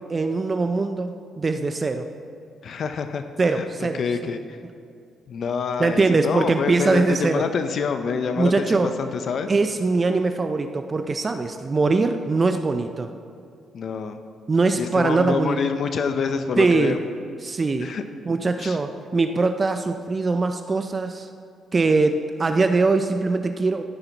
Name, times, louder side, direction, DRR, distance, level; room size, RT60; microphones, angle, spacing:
voice 1, 0.0-2.1 3.4-4.0 5.8-7.4 8.4-8.9 9.5-13.1 14.5-15.6 16.6-17.0 17.4-17.9 18.3-21.3 21.7-23.8, right 3 dB, 30° right, 7 dB, 0.4 m, -22 dB
voice 2, 2.6-3.2 3.5-3.7 3.9-4.6 5.3-9.5 13.7-14.2 14.7-17.0 17.8-18.0 18.6-18.8, left 5 dB, 60° left, 8 dB, 0.5 m, -26 dB
14.0 x 5.7 x 3.9 m, 2.4 s
cardioid pair, 90°, 0 cm